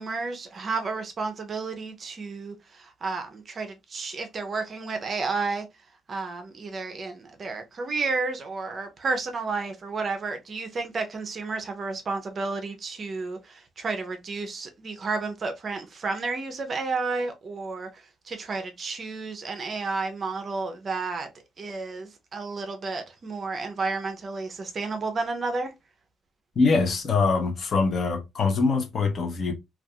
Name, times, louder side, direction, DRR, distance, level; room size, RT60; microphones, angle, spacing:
voice 1, 0.0-5.7 6.1-21.3 21.6-25.7, right 3 dB, 35° right, 0.5 m, -31 dB
voice 2, 26.6-29.5, left 4 dB, 35° left, 0.6 m, -23 dB
2.3 x 2.3 x 2.7 m
cardioid pair, 165°, 0 cm